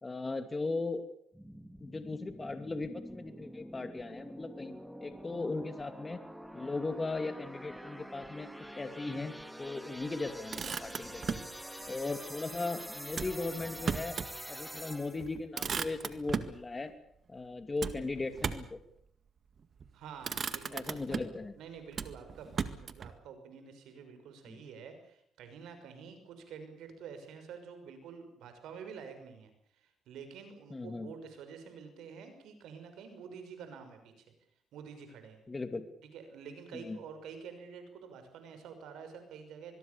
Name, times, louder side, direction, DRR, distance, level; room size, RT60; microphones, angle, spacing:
voice 1, 0.0-1.0 1.8-6.2 6.5-8.5 8.8-9.3 9.6-11.4 11.9-14.2 14.5-16.9 17.3-18.8 20.7-21.5 24.5-24.6 30.7-31.1 35.5-35.9 36.7-37.0, left 3 dB, 25° left, 9 dB, 2.6 m, -38 dB
sound 1, 1.3-15.3, equal, 5° right, 2.2 m, -46 dB
Motor vehicle (road), 10.3-11.5 13.1-14.4 14.8-14.9 15.2-16.6 17.8-18.8 19.6-19.9 20.2-21.4 21.9-23.1, right 6 dB, 45° right, 1.9 m, -37 dB
voice 2, 19.9-21.2 21.6-34.2 34.7-35.4 36.1-39.8, right 6 dB, 85° right, 8 dB, 6.0 m, -48 dB
25.0 x 21.5 x 7.0 m, 0.68 s
cardioid pair, 90°, 0 cm